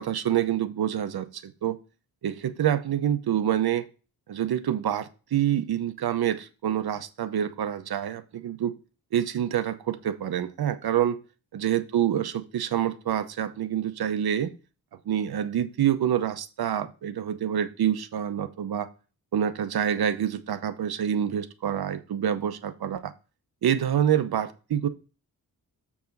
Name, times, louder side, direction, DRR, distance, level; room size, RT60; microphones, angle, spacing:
voice 1, 0.0-1.8 2.2-3.9 4.3-8.7 9.1-11.2 11.5-14.5 15.1-18.9 19.3-23.1 23.6-24.9, right 10 dB, 80° right, 0.8 m, -27 dB
7.4 x 4.8 x 5.2 m
wide cardioid pair, 140°, 37 cm